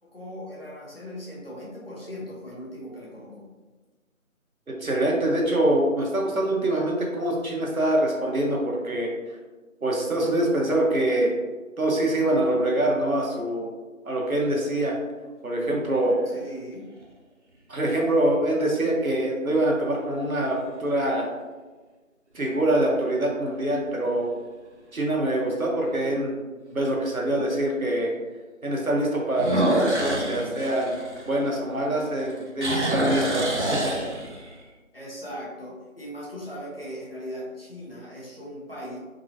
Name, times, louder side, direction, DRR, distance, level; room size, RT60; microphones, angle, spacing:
voice 1, 0.0-3.5 6.6-6.7 16.3-16.9 34.9-39.0, equal, 45° left, -6 dB, 1.2 m, -39 dB
voice 2, 4.7-9.1 9.8-11.3 11.8-13.7 14.0-14.9 15.4-16.2 17.7-21.3 22.3-24.3 24.9-26.4 26.7-28.1 28.6-31.0 31.3-34.1, right 1 dB, 85° right, -1 dB, 1.1 m, -24 dB
sound 1, 15.7-16.4 17.0-17.1 22.3-22.8 23.3-23.4 23.9-24.0 24.3-24.4 25.9-26.0 29.3-31.9 32.2-34.6, right 1 dB, 55° right, 0.7 m, -27 dB
3.8 x 2.9 x 2.7 m, 1.3 s
figure-of-eight pair, 170°, 41 cm